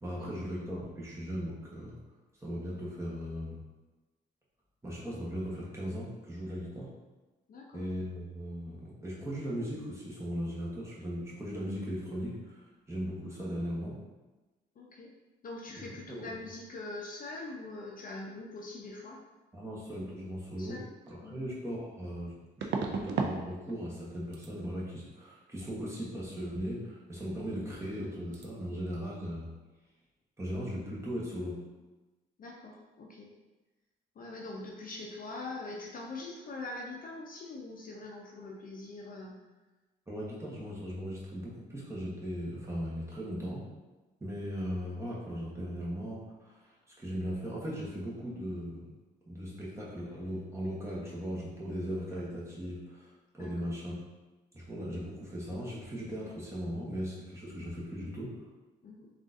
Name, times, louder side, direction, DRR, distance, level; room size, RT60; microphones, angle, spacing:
voice 1, 0.0-2.0 2.4-3.6 4.8-6.9 7.7-14.0 15.7-16.3 19.5-29.5 30.4-31.6 40.1-43.7 44.2-46.6 47.0-48.9 49.3-53.9 54.5-58.4, equal, 15° right, -6 dB, 1.0 m, -38 dB
voice 2, 7.5-7.9 14.8-15.1 15.4-19.2 20.6-20.8 21.2-21.5 32.4-33.3 34.2-39.3 53.4-53.7 58.8-59.1, left 2 dB, 45° left, -2 dB, 0.5 m, -43 dB
sound 1, 21.1-21.2 22.6-23.4 23.7-24.1 24.3-24.5 27.4-27.6 27.8-28.1 28.3-28.5, right 4 dB, 65° right, 0.4 m, -34 dB
3.7 x 2.4 x 2.5 m, 1.2 s
cardioid pair, 90°, 20 cm